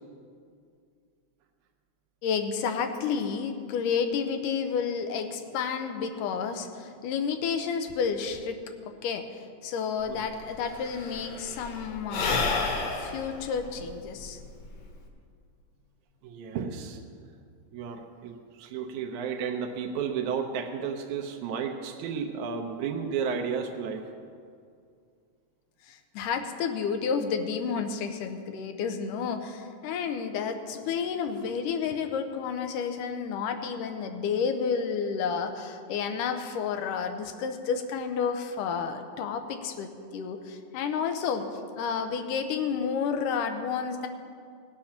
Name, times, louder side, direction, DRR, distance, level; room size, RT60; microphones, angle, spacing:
voice 1, 2.2-12.6 12.9-14.4 25.9-44.1, left 6 dB, 85° left, 7 dB, 2.4 m, -31 dB
Sigh / Breathing, 10.0-10.1 10.3-15.1, left 4 dB, 55° left, 2.0 m, -31 dB
voice 2, 16.2-17.0 17.7-24.0, right 6 dB, 75° right, 3 dB, 2.1 m, -32 dB
18.0 x 7.5 x 5.8 m, 2.3 s
omnidirectional pair, 3.7 m